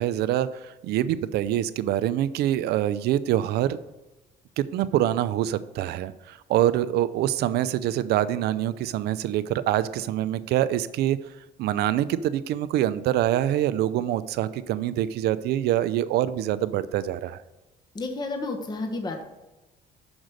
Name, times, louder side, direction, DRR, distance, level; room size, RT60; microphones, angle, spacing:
voice 1, 0.0-3.8 4.6-11.2 11.6-17.4, right 12 dB, 75° right, 15 dB, 0.5 m, -25 dB
voice 2, 17.9-19.2, left 2 dB, 25° left, 3 dB, 1.0 m, -31 dB
6.1 x 5.1 x 6.5 m, 1.1 s
cardioid pair, 110°, 17 cm